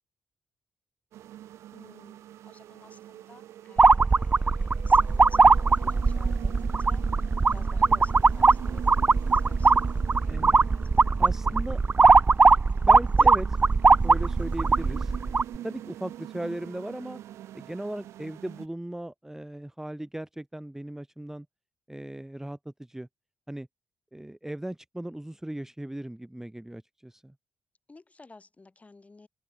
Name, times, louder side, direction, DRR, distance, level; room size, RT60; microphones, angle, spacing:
sound 1, 1.1-18.7, right 12 dB, 85° right, 1.3 m, -43 dB
voice 1, 1.7-11.7 12.5-13.4 27.9-29.3, left 3 dB, 30° left, 7.8 m, -54 dB
sound 2, 3.8-15.6, right 4 dB, 30° right, 0.3 m, -20 dB
voice 2, 11.2-11.8 12.9-13.6 14.0-15.1 15.6-17.2 17.5-21.5 21.9-23.1 23.5-23.7 24.1-27.3, right 1 dB, 10° right, 1.0 m, -37 dB
open air
supercardioid pair, 55°, 5 cm